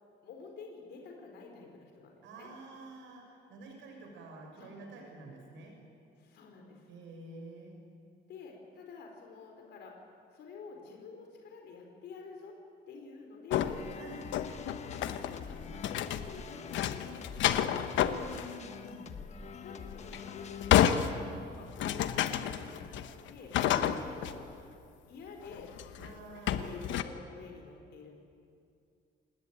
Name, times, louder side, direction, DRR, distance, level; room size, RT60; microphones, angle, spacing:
voice 1, 0.2-2.5 4.6-4.7 6.2-6.9 8.3-10.0 10.3-12.6 12.9-13.8 14.6-18.2 19.6-21.2 21.5-23.5 23.9-24.4 25.1-26.2 26.5-28.2, left 5 dB, 60° left, 2 dB, 4.4 m, -49 dB
voice 2, 2.2-5.7 6.9-7.8 14.0-14.3 17.9-19.2 23.7-24.0 26.0-26.9, right 2 dB, 80° right, 1 dB, 6.0 m, -49 dB
sound 1, 13.5-16.4 16.7-18.6 18.9-19.0 19.9-24.3 25.4-26.1 26.5-27.0, left 10 dB, 80° left, 1.3 m, -30 dB
sound 2, 13.5-22.7, left 6 dB, 35° left, 1.3 m, -46 dB
27.5 x 20.0 x 9.3 m, 2.4 s
cardioid pair, 175°, 19 cm